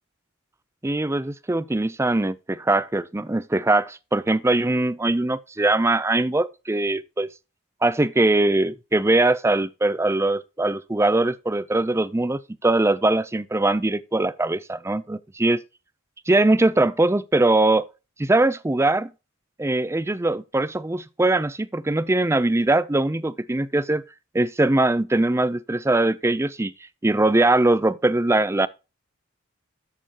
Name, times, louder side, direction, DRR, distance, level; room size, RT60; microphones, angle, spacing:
voice 1, 0.8-7.3 7.8-15.6 16.3-17.9 18.2-19.1 19.6-24.0 24.3-26.7 27.0-28.7, right 2 dB, 15° right, 0.4 m, -21 dB
13.5 x 6.7 x 2.9 m
head